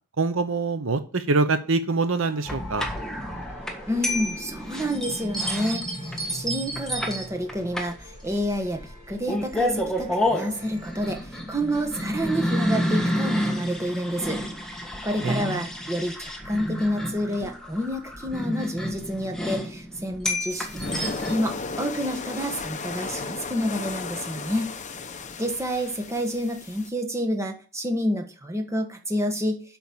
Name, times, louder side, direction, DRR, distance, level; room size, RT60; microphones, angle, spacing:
voice 1, 0.2-2.9 15.2-15.6, right 3 dB, 65° right, 10 dB, 0.8 m, -24 dB
sound 1, 1.9-11.1, equal, 30° right, 4.4 m, -51 dB
sound 2, 2.4-21.3, equal, 5° left, 1.5 m, -30 dB
voice 2, 3.9-8.8 9.1-14.4 15.0-24.7 25.4-29.6, equal, 15° right, 4 dB, 1.3 m, -29 dB
sound 3, 20.5-26.9, left 4 dB, 35° left, 0.8 m, -35 dB
7.9 x 6.1 x 7.3 m, 0.39 s
head